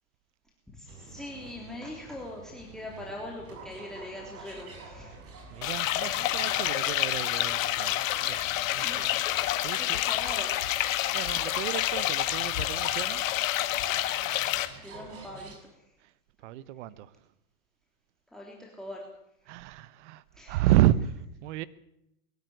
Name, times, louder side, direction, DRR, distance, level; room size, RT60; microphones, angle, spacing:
voice 1, 0.7-5.5 8.7-11.0 14.7-15.8 18.3-19.1 20.3-20.6, left 1 dB, ahead, 3.2 m, -43 dB
sound 1, 0.9-15.6, right 3 dB, 30° right, 6.1 m, -48 dB
voice 2, 5.1-8.4 8.7-10.0 11.1-13.2 16.0-16.1 16.4-17.1 19.5-21.7, right 14 dB, 50° right, 1.1 m, -31 dB
sound 2, 5.6-14.7, left 14 dB, 60° left, 1.9 m, -28 dB
22.5 x 12.5 x 9.5 m
hypercardioid pair, 125°, 44 cm